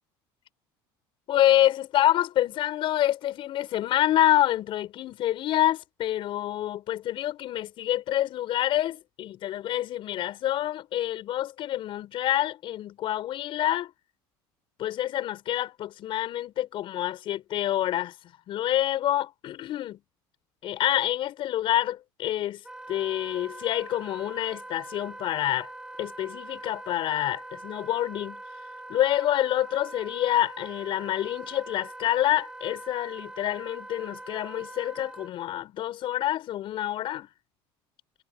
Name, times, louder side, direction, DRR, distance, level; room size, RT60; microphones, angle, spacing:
voice 1, 1.3-13.9 14.8-18.1 18.5-20.0 20.6-22.6 22.9-25.7 26.0-28.4 28.9-37.3, left 13 dB, 55° left, 6.3 m, -27 dB
Wind instrument woodwind instrument, 22.6-35.3, right 1 dB, 5° right, 6.2 m, -43 dB
supercardioid pair, 110°, 10 cm